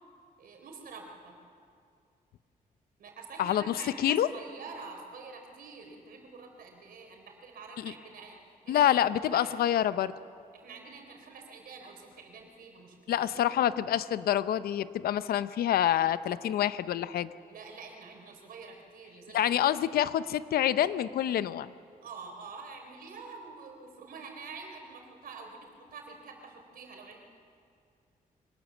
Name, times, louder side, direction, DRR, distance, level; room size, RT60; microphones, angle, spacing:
voice 1, 0.4-1.4 3.0-9.1 9.3-9.5 10.5-13.3 17.5-19.6 22.0-27.2, right 4 dB, 75° right, 3 dB, 4.0 m, -47 dB
voice 2, 3.4-4.3 7.8-7.9 8.7-10.1 13.1-17.3 19.3-21.7, left 11 dB, 85° left, 15 dB, 0.7 m, -27 dB
24.0 x 18.0 x 7.2 m, 2.4 s
cardioid pair, 90°, 15 cm